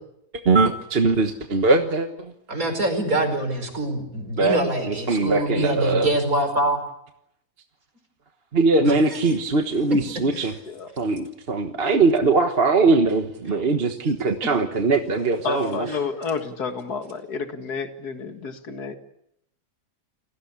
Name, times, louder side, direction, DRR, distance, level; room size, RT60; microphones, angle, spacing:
voice 1, 0.4-2.3 4.4-4.6 4.9-6.1 8.5-10.5 11.0-15.9, right 3 dB, 40° right, 6 dB, 1.5 m, -21 dB
voice 2, 2.5-6.8 8.8-9.3 10.3-10.5 13.5-13.6, right 1 dB, 55° right, 7 dB, 5.5 m, -25 dB
voice 3, 15.4-19.0, left 5 dB, 70° left, 6 dB, 2.6 m, -30 dB
29.5 x 18.0 x 8.5 m, 0.79 s
omnidirectional pair, 1.7 m